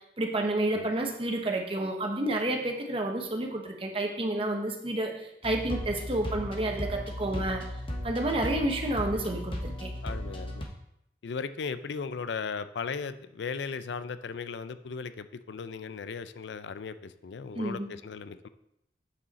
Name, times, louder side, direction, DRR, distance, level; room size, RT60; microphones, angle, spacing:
voice 1, 0.2-7.6 8.0-9.9 17.5-17.9, right 1 dB, 30° right, 2 dB, 1.0 m, -30 dB
sound 1, 5.4-10.6, left 1 dB, 30° left, 1.0 m, -36 dB
voice 2, 10.0-10.6 11.2-18.5, left 5 dB, 80° left, 13 dB, 0.4 m, -37 dB
8.0 x 5.6 x 4.1 m, 0.80 s
head